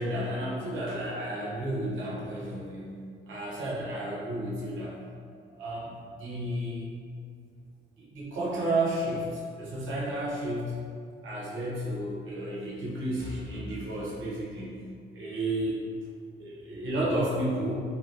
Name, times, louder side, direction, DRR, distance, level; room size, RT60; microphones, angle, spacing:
voice 1, 0.0-3.0 3.3-4.9 5.6-6.9 8.0-10.8 11.2-14.8 15.1-15.8 16.4-17.8, right 1 dB, 80° right, -6 dB, 0.8 m, -32 dB
3.0 x 2.8 x 2.5 m, 2.2 s
cardioid pair, 90°, 20 cm